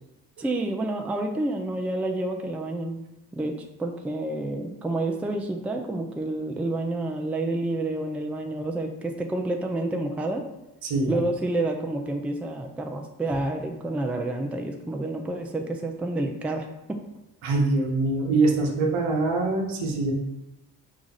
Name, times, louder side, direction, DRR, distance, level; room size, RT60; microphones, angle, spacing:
voice 1, 0.4-3.0 3.3-10.5 11.1-17.0, right 2 dB, 5° right, 3 dB, 0.4 m, -29 dB
voice 2, 10.8-11.2 17.4-20.1, right 3 dB, 75° right, 1 dB, 1.0 m, -24 dB
4.9 x 2.4 x 4.0 m, 0.92 s
hypercardioid pair, 50°, 48 cm